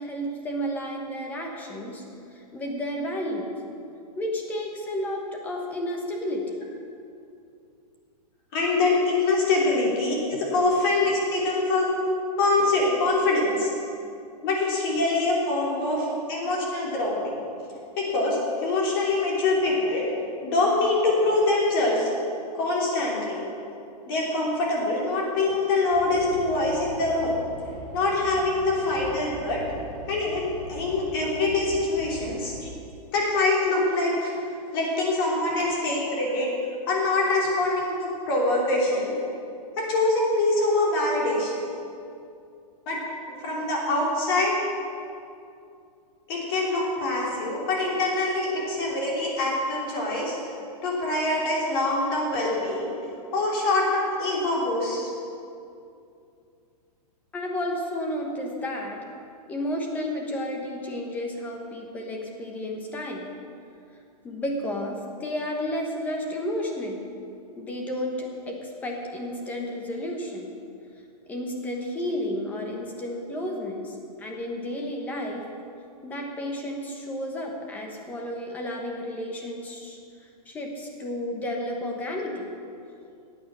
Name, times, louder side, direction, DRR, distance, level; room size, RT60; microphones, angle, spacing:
voice 1, 0.0-2.0 2.3-3.5 4.2-6.6 16.9-17.0 19.5-19.7 28.7-29.1 35.5-35.6 37.5-37.6 48.7-48.9 57.3-59.0 59.5-63.3 64.2-67.1 67.6-70.5 71.3-75.5 76.0-82.5, left 1 dB, 10° left, 1 dB, 1.0 m, -32 dB
voice 2, 8.5-11.9 12.4-13.7 14.4-17.4 18.0-20.0 20.4-22.1 22.5-23.4 24.1-27.4 27.9-29.6 30.1-32.7 33.1-34.4 34.7-36.5 36.9-39.2 39.8-41.6 42.9-43.0 43.4-44.6 46.3-50.3 50.8-52.9 53.3-55.1, left 2 dB, 35° left, -3 dB, 3.1 m, -24 dB
sound 1, 25.9-32.7, right 2 dB, 15° right, 2.9 m, -41 dB
15.0 x 9.1 x 6.2 m, 2.5 s
hypercardioid pair, 175°, 21 cm